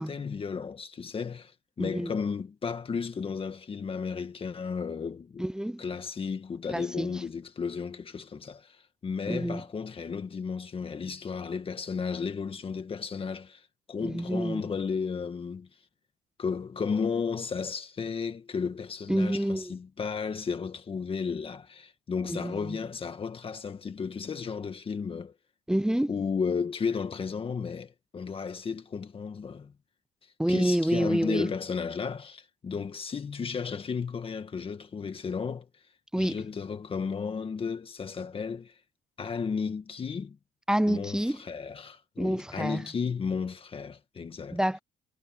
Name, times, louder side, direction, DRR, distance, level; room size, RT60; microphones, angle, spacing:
voice 1, 0.0-1.5 1.8-5.4 5.8-15.7 16.4-25.3 26.1-29.7 30.5-35.7 36.2-38.8 39.2-40.4 40.9-44.6, left 5 dB, 35° left, 1.9 m, -33 dB
voice 2, 1.8-2.1 5.4-5.8 6.7-7.2 9.3-9.6 14.0-14.7 19.1-19.7 22.3-22.8 25.7-26.1 30.4-31.5 36.1-36.5 40.7-41.4 42.2-42.8 44.5-44.8, right 1 dB, 5° right, 0.4 m, -28 dB
cardioid pair, 110°, 17 cm